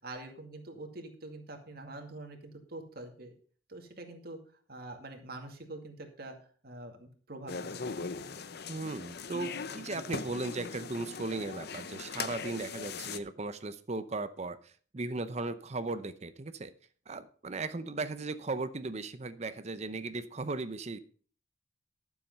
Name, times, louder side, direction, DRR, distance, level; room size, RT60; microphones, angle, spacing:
voice 1, 0.0-3.3 3.7-4.4 4.7-6.4 6.6-8.1, right 2 dB, 50° right, 3 dB, 2.3 m, -45 dB
sound 1, 7.5-13.2, left 5 dB, 55° left, 0.7 m, -40 dB
voice 2, 8.7-14.6 14.9-16.7 17.1-21.0, right 3 dB, 35° right, 12 dB, 0.6 m, -37 dB
12.5 x 7.2 x 5.4 m, 0.44 s
head